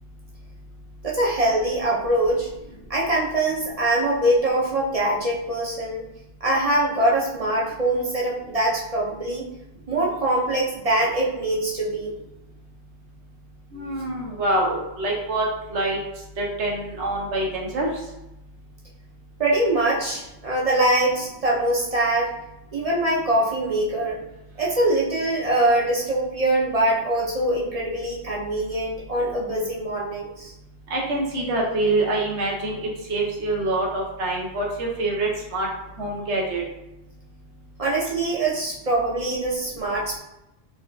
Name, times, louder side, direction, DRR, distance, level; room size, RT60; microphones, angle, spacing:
voice 1, 1.0-2.5 2.9-6.1 6.4-9.5 9.9-12.1 19.4-22.3 22.7-24.2 24.6-30.5 37.8-40.2, right 1 dB, 45° right, -4 dB, 0.5 m, -23 dB
voice 2, 13.7-15.4 15.7-16.0 16.4-17.9 30.9-35.7 36.0-36.6, right 2 dB, 80° right, -2 dB, 1.1 m, -25 dB
4.3 x 2.3 x 2.2 m, 0.91 s
omnidirectional pair, 1.2 m